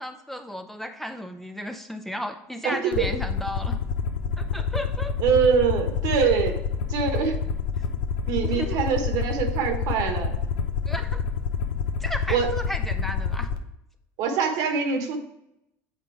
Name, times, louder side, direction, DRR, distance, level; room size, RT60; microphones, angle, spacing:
voice 1, 0.0-3.8 4.4-5.2 8.4-8.9 10.9-11.2 12.0-13.5, equal, 5° left, 7 dB, 0.5 m, -34 dB
voice 2, 2.6-3.0 5.2-6.6 6.9-7.4 8.2-10.3 12.3-12.5 14.2-15.2, right 6 dB, 70° right, 5 dB, 1.3 m, -24 dB
Aircraft, 2.9-13.6, left 6 dB, 85° left, 0.7 m, -28 dB
8.2 x 3.8 x 4.6 m, 0.81 s
supercardioid pair, 120°, 7 cm